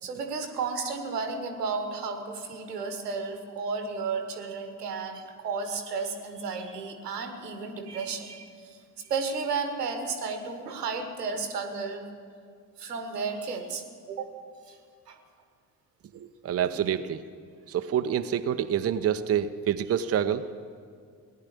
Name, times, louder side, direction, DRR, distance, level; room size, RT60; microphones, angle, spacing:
voice 1, 0.0-12.1 12.8-14.3 14.7-14.8 15.1-15.2, right 4 dB, 85° right, 6 dB, 1.3 m, -33 dB
voice 2, 16.1-17.2 17.7-20.5, right 9 dB, 30° right, 9 dB, 0.7 m, -27 dB
17.5 x 10.0 x 8.3 m, 2.1 s
figure-of-eight pair, 50°, 46 cm